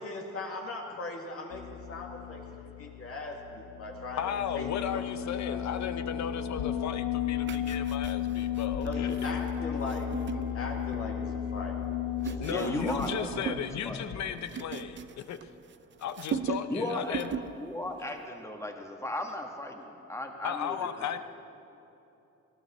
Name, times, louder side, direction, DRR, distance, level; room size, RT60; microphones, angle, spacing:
voice 1, 0.0-2.4 2.8-5.9 8.8-11.8 12.2-12.8, left 2 dB, 50° left, 0 dB, 2.1 m, -39 dB
sound 1, 1.5-14.3, left 9 dB, 85° left, 1.3 m, -34 dB
voice 2, 4.2-9.3 12.4-15.5 16.0-17.3 20.4-21.2, left 8 dB, 65° left, 10 dB, 0.8 m, -35 dB
sound 2, 7.4-11.3 11.9-13.7 14.0-15.8 16.0-16.8 17.1-17.6 17.9-18.1, right 6 dB, 40° right, 0.6 m, -39 dB
voice 3, 12.2-14.0 16.7-21.2, left 1 dB, 10° left, 2 dB, 1.8 m, -36 dB
19.0 x 13.5 x 4.3 m, 2.9 s
cardioid pair, 90°, 30 cm